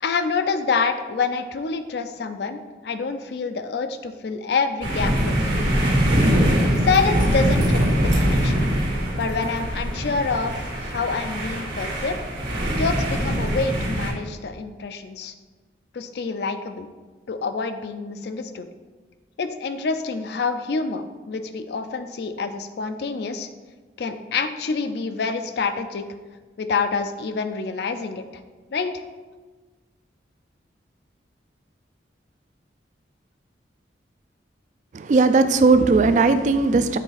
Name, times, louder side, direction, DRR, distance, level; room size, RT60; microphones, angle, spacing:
voice 1, 0.0-5.8 6.8-8.7 9.1-12.2 12.7-15.3 15.9-16.9 17.3-18.7 19.4-23.5 24.0-26.0 26.6-28.2 28.7-29.0, left 4 dB, 60° left, 8 dB, 0.4 m, -27 dB
sound 1, 4.8-14.1, equal, 80° right, 2.0 m, -22 dB
voice 2, 34.9-37.0, right 3 dB, 40° right, 11 dB, 0.3 m, -17 dB
7.3 x 3.8 x 4.0 m, 1.3 s
head